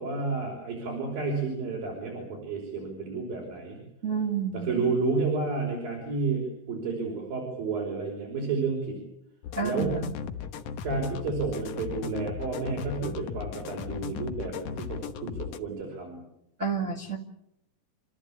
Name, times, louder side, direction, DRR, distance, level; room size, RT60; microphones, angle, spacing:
voice 1, 0.0-3.8 4.5-9.0 9.6-9.9 10.8-16.2, right 4 dB, 85° right, 0 dB, 7.1 m, -31 dB
voice 2, 4.0-4.8 9.6-10.2 16.6-17.2, right 5 dB, 25° right, 1 dB, 1.8 m, -30 dB
sound 1, 9.4-15.6, left 7 dB, 65° left, 2.5 m, -37 dB
30.0 x 14.5 x 8.7 m, 0.78 s
omnidirectional pair, 4.0 m